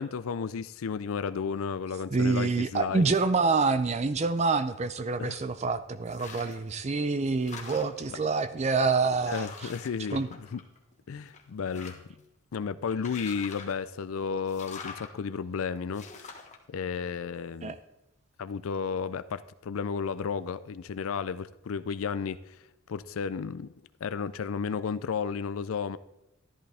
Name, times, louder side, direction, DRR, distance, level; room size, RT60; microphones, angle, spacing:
voice 1, 0.0-3.0 5.2-5.4 9.2-10.2 10.5-10.6 11.1-12.0 12.5-16.3 16.7-17.7 18.4-22.6 22.9-23.7 24.0-26.0, left 6 dB, 75° left, 14 dB, 0.4 m, -33 dB
voice 2, 2.1-9.7 10.1-10.3 17.6-17.8, right 4 dB, 30° right, 12 dB, 0.4 m, -27 dB
sound 1, 6.1-6.7 7.1-8.2 8.8-8.9 9.2-10.9 11.3-12.2 12.9-13.8 14.5-15.1 15.9-16.6, left 5 dB, 35° left, 1.3 m, -45 dB
13.0 x 11.0 x 3.4 m, 0.88 s
head